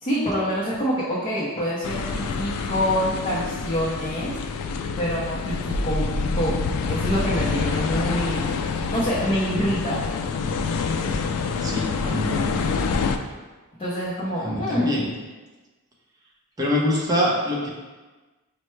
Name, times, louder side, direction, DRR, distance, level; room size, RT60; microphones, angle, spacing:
voice 1, 0.0-4.3 5.0-8.5 8.9-10.0 13.8-15.0, equal, 25° left, -8 dB, 0.6 m, -26 dB
sound 1, 1.8-13.2, left 4 dB, 80° left, 0.3 m, -27 dB
voice 2, 11.6-12.7 14.4-15.1 16.6-17.7, left 1 dB, 15° right, -4 dB, 0.7 m, -24 dB
5.4 x 2.2 x 3.1 m, 1.2 s
head